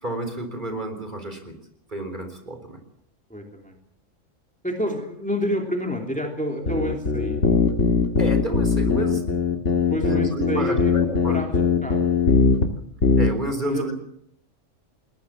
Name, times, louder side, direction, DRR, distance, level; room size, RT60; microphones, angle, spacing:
voice 1, 0.0-1.6 1.9-2.8 8.2-9.2 9.5-11.4 13.2-13.9, right 1 dB, 35° right, 6 dB, 4.1 m, -30 dB
voice 2, 3.3-3.7 4.6-7.5 9.9-10.9 11.2-12.2 13.6-13.9, left 1 dB, 5° left, 2 dB, 3.1 m, -29 dB
sound 1, 6.7-12.7 13.0-13.3, left 4 dB, 70° left, 2.3 m, -20 dB
21.0 x 19.5 x 7.5 m, 0.72 s
omnidirectional pair, 1.3 m